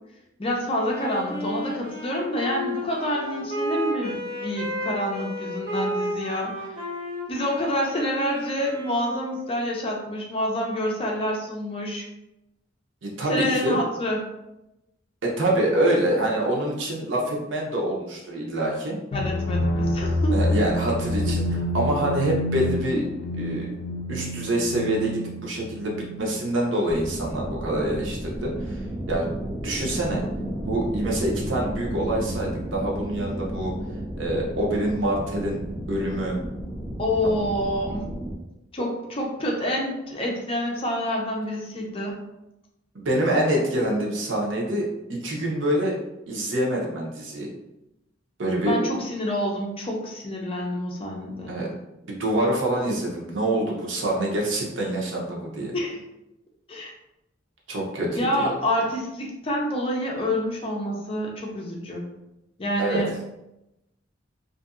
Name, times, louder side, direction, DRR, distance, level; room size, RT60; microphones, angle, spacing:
voice 1, 0.4-6.7 7.3-12.1 13.3-14.2 19.1-20.4 37.0-38.0 38.7-42.2 48.6-51.5 55.7-56.0 56.7-56.9 58.2-62.1 62.6-63.1, equal, 30° left, -1 dB, 0.5 m, -27 dB
Wind instrument woodwind instrument, 0.7-9.6, equal, 45° right, 0.9 m, -32 dB
voice 2, 13.0-13.8 15.2-19.0 20.3-23.1 23.3-23.7 24.1-28.8 29.1-29.3 29.6-30.2 30.7-33.7 34.2-35.6 35.9-36.3 42.9-46.0 46.3-47.5 48.4-48.8 51.5-51.7 52.0-55.7 57.7-58.5 62.8-63.0, right 1 dB, 90° right, -2 dB, 0.7 m, -26 dB
sound 1, 19.1-26.8, left 1 dB, 85° left, 0.3 m, -28 dB
sound 2, 26.9-38.4, right 1 dB, 25° right, 0.4 m, -32 dB
2.6 x 2.6 x 2.4 m, 0.90 s
head